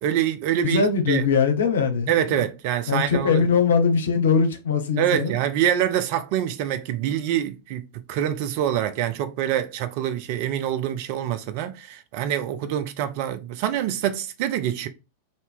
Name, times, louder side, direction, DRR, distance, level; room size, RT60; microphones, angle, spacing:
voice 1, 0.0-0.8 1.1-1.3 2.1-3.4 5.0-7.8 8.1-14.9, right 10 dB, 45° right, 0.5 m, -25 dB
voice 2, 0.6-2.4 2.9-5.4, left 5 dB, 65° left, 0.8 m, -21 dB
2.9 x 2.7 x 3.5 m
figure-of-eight pair, 90°, 0 cm